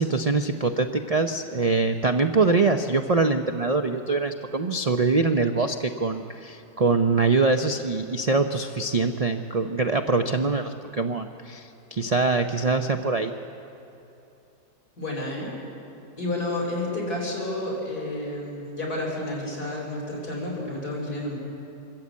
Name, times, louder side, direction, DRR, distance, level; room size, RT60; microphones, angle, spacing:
voice 1, 0.0-13.3, right 3 dB, 60° right, 6 dB, 0.4 m, -24 dB
voice 2, 15.0-15.5 16.2-21.4, left 1 dB, 65° left, -2 dB, 5.7 m, -30 dB
25.0 x 13.5 x 8.5 m, 2.9 s
omnidirectional pair, 1.7 m